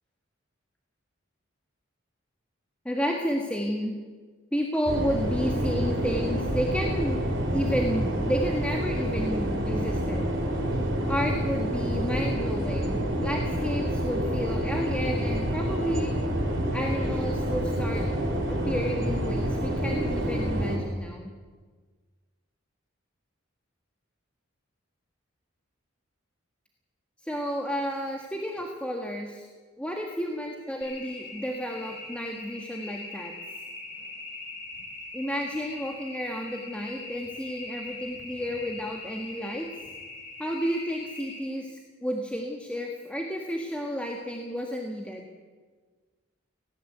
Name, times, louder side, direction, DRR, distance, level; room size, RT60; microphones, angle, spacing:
voice 1, 2.8-4.0 4.5-10.3 11.1-16.1 16.7-18.1 18.5-21.3 27.2-29.5 29.8-33.3 35.1-39.7 40.4-45.3, equal, 5° left, 1 dB, 1.6 m, -31 dB
sound 1, 4.9-20.8, equal, 65° right, 5.3 m, -28 dB
sound 2, 30.8-41.4, left 2 dB, 60° left, 7.8 m, -42 dB
18.5 x 17.0 x 9.4 m, 1.4 s
head